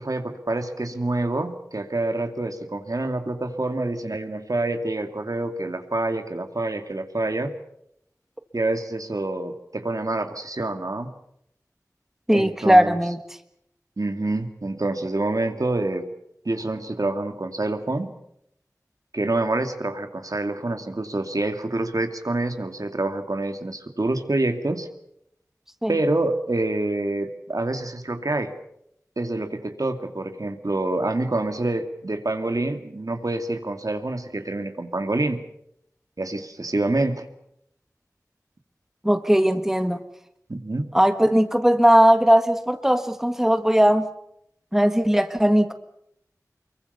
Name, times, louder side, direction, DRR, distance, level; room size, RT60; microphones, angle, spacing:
voice 1, 0.0-7.5 8.5-11.1 12.3-13.0 14.0-16.1 16.4-18.1 19.1-24.9 25.9-28.5 29.2-35.4 36.2-37.3 40.5-40.9, right 2 dB, 65° right, 7 dB, 2.4 m, -27 dB
voice 2, 12.3-13.2 25.8-25.9 39.0-40.0 40.9-44.1 44.7-45.7, equal, 5° right, 9 dB, 1.5 m, -18 dB
25.0 x 23.0 x 6.9 m, 0.75 s
wide cardioid pair, 50°, 6 cm